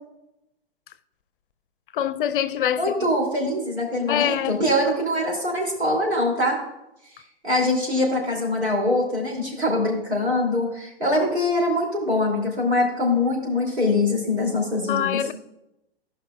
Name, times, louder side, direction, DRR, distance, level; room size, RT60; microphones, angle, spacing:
voice 1, 1.9-3.1 4.1-4.6 14.9-15.3, left 10 dB, 55° left, 0.5 m, -24 dB
voice 2, 2.8-6.6 7.4-15.2, left 1 dB, 90° right, 2.8 m, -23 dB
16.0 x 5.5 x 2.3 m
figure-of-eight pair, 110°, 32 cm